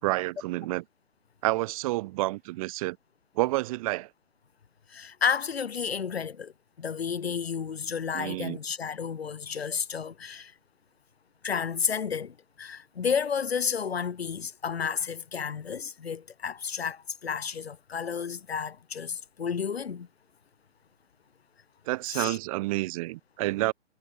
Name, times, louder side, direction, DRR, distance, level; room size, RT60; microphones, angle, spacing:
voice 1, 0.0-0.8 1.4-3.0 3.4-4.1 8.1-8.6 21.9-23.7, right 19 dB, 30° right, 6.2 m, -29 dB
voice 2, 4.9-6.5 6.8-10.5 11.4-20.1 22.1-22.4, left 6 dB, 55° left, 7.6 m, -31 dB
figure-of-eight pair, 135°, 37 cm